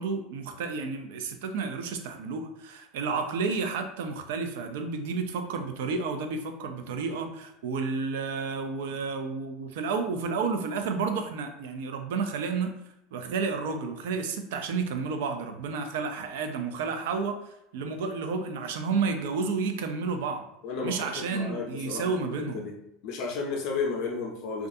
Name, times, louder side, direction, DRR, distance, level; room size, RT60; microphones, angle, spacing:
voice 1, 0.0-12.7 13.1-17.4 17.7-20.5 20.8-22.6, right 4 dB, 85° right, 6 dB, 0.4 m, -31 dB
voice 2, 20.6-22.1 22.5-22.7 23.0-24.7, left 4 dB, 50° left, 0 dB, 0.4 m, -32 dB
2.4 x 2.2 x 2.6 m, 0.83 s
supercardioid pair, 160°, 0 cm